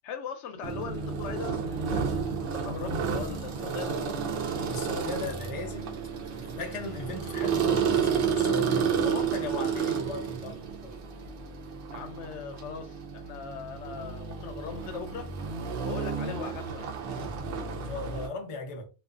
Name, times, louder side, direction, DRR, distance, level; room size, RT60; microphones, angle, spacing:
voice 1, 0.0-4.0 11.9-15.3 15.8-17.0, left 6 dB, 90° left, 0.9 m, -40 dB
sound 1, 0.6-18.3, right 6 dB, 60° right, 0.7 m, -31 dB
voice 2, 4.6-11.0 17.7-18.9, left 2 dB, 40° left, 0.5 m, -37 dB
2.4 x 2.3 x 2.4 m
omnidirectional pair, 1.1 m